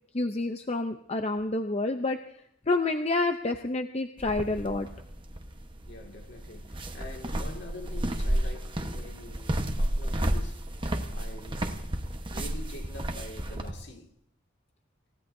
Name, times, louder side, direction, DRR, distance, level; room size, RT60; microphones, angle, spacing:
voice 1, 0.1-2.2 2.7-4.9, left 2 dB, 30° left, 0.6 m, -28 dB
sound 1, 4.2-13.7, right 1 dB, 25° right, 1.2 m, -32 dB
voice 2, 5.9-10.7 11.1-11.8 12.3-14.1, left 2 dB, 60° left, 2.2 m, -45 dB
28.0 x 16.5 x 2.7 m
head